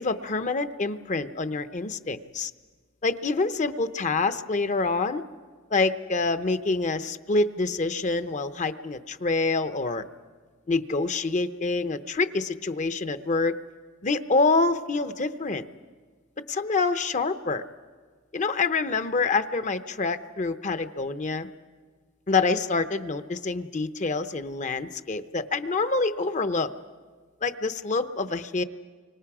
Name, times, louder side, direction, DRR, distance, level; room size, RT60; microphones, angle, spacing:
voice 1, 0.0-2.5 3.0-5.2 5.7-10.0 10.7-13.6 14.0-15.7 16.5-17.6 18.3-21.5 22.3-26.7 27.4-28.6, left 3 dB, 40° left, 11 dB, 0.8 m, -26 dB
29.5 x 25.0 x 4.9 m, 1.5 s
head